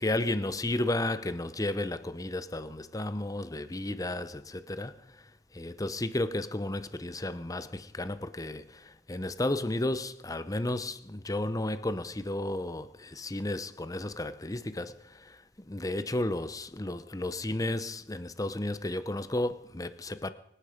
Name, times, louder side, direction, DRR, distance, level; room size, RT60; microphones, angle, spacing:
voice 1, 0.0-5.2 5.5-20.3, left 1 dB, 20° left, 0.8 m, -33 dB
24.5 x 10.0 x 5.1 m
head